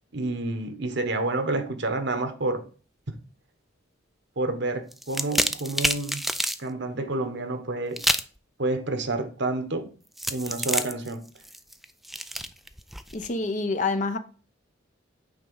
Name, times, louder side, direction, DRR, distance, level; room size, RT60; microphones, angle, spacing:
voice 1, 0.1-2.6 4.4-6.2 6.6-8.0 8.6-9.9 10.3-11.3, right 2 dB, 60° right, 1.2 m, -29 dB
sound 1, 4.9-6.6 8.0-8.4 10.2-13.3, equal, ahead, 0.3 m, -28 dB
voice 2, 13.1-14.2, left 3 dB, 40° left, 0.7 m, -27 dB
8.8 x 3.7 x 5.5 m
head